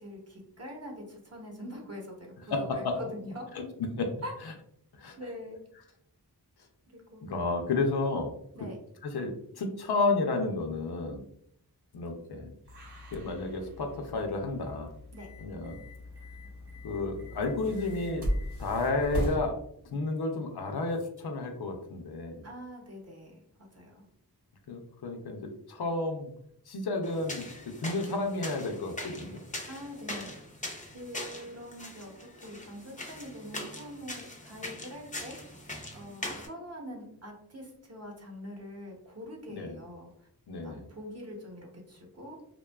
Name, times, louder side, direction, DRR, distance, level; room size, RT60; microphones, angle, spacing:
voice 1, 0.0-3.5 4.2-4.3 5.2-5.6 6.9-7.3 8.5-8.8 15.1-15.3 22.4-23.3 23.7-24.0 29.7-30.3 30.9-35.4 35.9-40.1 40.6-42.4, equal, 40° right, 0 dB, 0.8 m, -44 dB
voice 2, 2.5-3.0 3.5-3.6 4.0-4.1 5.0-5.2 7.2-8.3 9.0-11.2 11.9-12.5 13.1-14.9 15.4-15.8 16.8-18.3 18.6-19.5 19.9-22.5 24.7-26.3 26.7-29.4 39.5-39.8 40.5-40.9, left 3 dB, 75° left, 4 dB, 0.5 m, -31 dB
sound 1, 12.6-19.4, equal, 85° right, 0.9 m, -38 dB
sound 2, 27.0-36.5, left 1 dB, 20° left, 0.4 m, -42 dB
2.5 x 2.2 x 2.2 m, 0.70 s
wide cardioid pair, 50°, 39 cm